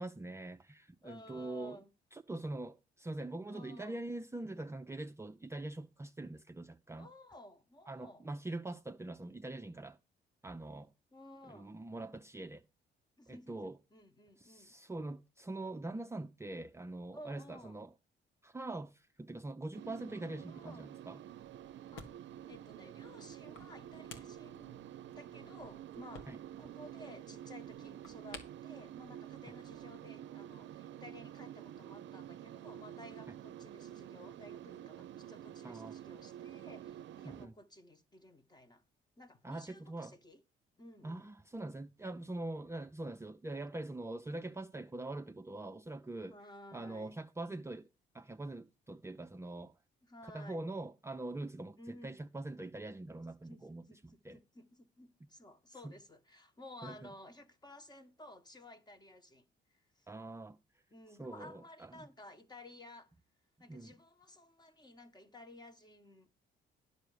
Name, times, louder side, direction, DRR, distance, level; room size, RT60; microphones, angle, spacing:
voice 1, 0.0-1.8 2.1-7.1 7.9-10.0 10.4-10.9 11.5-12.6 13.3-13.8 14.4-17.9 18.4-21.2 26.3-26.4 33.3-33.4 35.6-36.0 37.2-37.5 39.4-40.1 41.0-46.4 46.7-47.9 48.1-49.7 50.2-54.4 55.8-55.9 56.8-57.1 60.1-60.6 61.1-62.1 63.7-63.9, right 2 dB, 15° right, 0.5 m, -43 dB
voice 2, 1.0-1.9 3.5-4.0 7.0-8.3 11.1-11.8 13.2-14.7 17.1-17.8 20.5-21.0 21.9-22.1 22.5-24.8 25.1-26.3 26.6-38.8 39.2-40.4 40.8-41.3 46.3-47.1 50.0-50.7 51.8-52.2 53.4-59.5 59.7-60.1 60.9-63.1 63.6-66.3, left 1 dB, 20° left, 1.2 m, -55 dB
sound 1, 19.7-37.5, right 11 dB, 65° right, 0.5 m, -49 dB
sound 2, 21.3-30.0, left 4 dB, 85° left, 1.8 m, -57 dB
10.5 x 6.9 x 4.9 m
cardioid pair, 90°, 20 cm